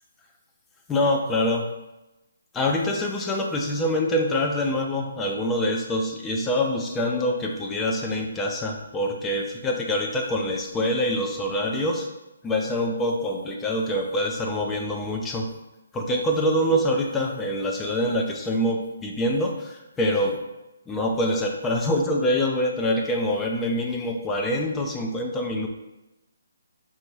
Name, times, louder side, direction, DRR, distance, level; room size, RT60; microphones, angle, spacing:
voice 1, 0.9-1.7 2.5-12.1 12.4-15.5 15.9-20.4 20.9-25.7, left 1 dB, 10° left, 1 dB, 0.5 m, -25 dB
5.3 x 2.5 x 3.2 m, 0.97 s
figure-of-eight pair, 145°, 0 cm